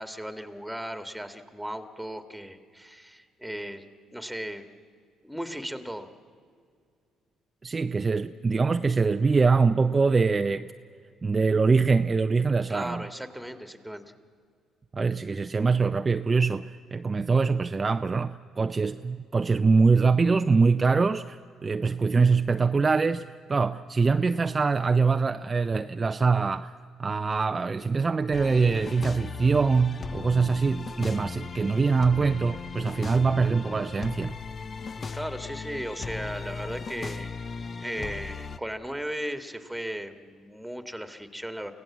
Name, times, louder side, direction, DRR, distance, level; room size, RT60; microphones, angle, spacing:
voice 1, 0.0-3.8 4.1-4.6 5.2-6.1 12.7-14.1 35.1-37.4 37.8-41.7, equal, ahead, 9 dB, 1.9 m, -36 dB
voice 2, 7.6-10.7 11.2-13.0 14.9-26.7 27.0-34.4, right 4 dB, 30° right, 8 dB, 0.5 m, -23 dB
sound 1, 28.3-38.6, left 5 dB, 40° left, 0.8 m, -37 dB
25.5 x 16.5 x 7.3 m, 2.2 s
hypercardioid pair, 55°, 0 cm